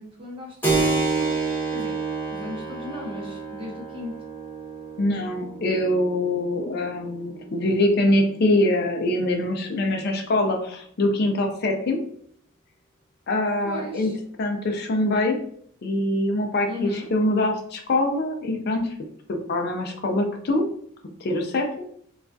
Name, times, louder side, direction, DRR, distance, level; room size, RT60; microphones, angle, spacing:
voice 1, 0.0-2.0 2.3-4.2 13.6-14.2 16.7-17.1, left 2 dB, 25° right, -1 dB, 0.7 m, -36 dB
Keyboard (musical), 0.6-8.8, right 4 dB, 10° left, 0.8 m, -29 dB
voice 2, 5.0-12.0 13.3-14.1 14.4-15.4 15.8-18.9 19.3-20.6 21.2-21.9, left 1 dB, 50° left, 3 dB, 0.4 m, -24 dB
3.2 x 2.3 x 2.5 m, 0.63 s
head